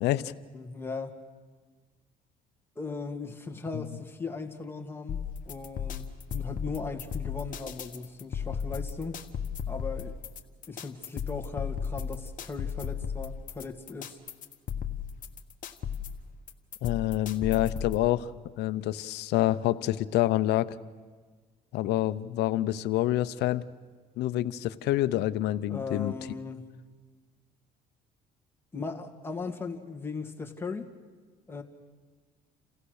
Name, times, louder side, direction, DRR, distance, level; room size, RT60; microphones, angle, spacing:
voice 1, 0.0-0.3 3.7-3.9 16.8-18.3 18.6-20.8 21.7-23.7 24.2-26.1, left 14 dB, 80° left, 15 dB, 0.7 m, -27 dB
voice 2, 0.5-1.2 2.8-9.2 9.7-10.1 10.7-14.2 25.7-26.7 28.7-30.9 31.5-31.6, left 4 dB, 15° left, 2 dB, 1.9 m, -38 dB
sound 1, 5.1-18.1, left 7 dB, 50° left, 1.3 m, -35 dB
28.5 x 15.5 x 6.5 m, 1.4 s
cardioid pair, 110°, 17 cm